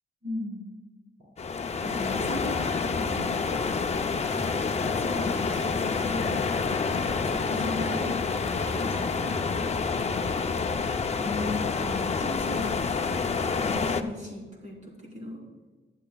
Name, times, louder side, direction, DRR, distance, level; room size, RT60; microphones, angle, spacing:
voice 1, 0.2-0.7 1.2-1.3 1.8-3.4 4.8-6.4 6.9-8.2 8.6-9.5 11.2-13.3 13.5-15.4, left 1 dB, 35° right, -4 dB, 3.8 m, -37 dB
sound 1, 1.4-14.0, left 5 dB, 30° left, 0.5 m, -28 dB
sound 2, 4.2-9.7, equal, 10° left, 1.6 m, -41 dB
20.0 x 11.0 x 2.3 m, 1.4 s
wide cardioid pair, 175°, 21 cm